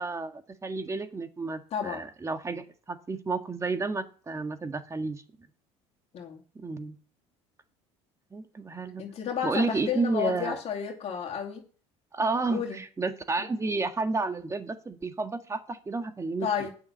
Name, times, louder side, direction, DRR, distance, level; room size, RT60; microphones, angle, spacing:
voice 1, 0.0-5.2 6.6-7.0 8.3-9.0 9.4-10.6 12.1-16.5, right 3 dB, 20° right, 1.7 m, -31 dB
voice 2, 1.7-2.0 6.1-6.4 9.0-11.6 12.5-12.8 16.4-16.7, left 8 dB, 45° left, 2.5 m, -32 dB
9.4 x 7.1 x 7.3 m
supercardioid pair, 85°, 14 cm